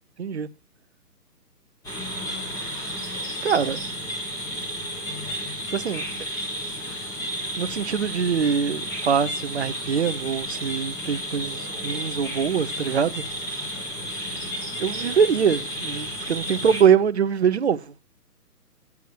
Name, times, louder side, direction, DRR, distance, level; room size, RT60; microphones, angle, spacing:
sound 1, 1.8-16.8, equal, 5° left, 1.3 m, -32 dB
voice 1, 3.4-3.8 5.7-6.0 7.6-13.2 14.8-18.0, right 7 dB, 45° right, 0.7 m, -23 dB
8.4 x 7.0 x 6.4 m
figure-of-eight pair, 145°, 48 cm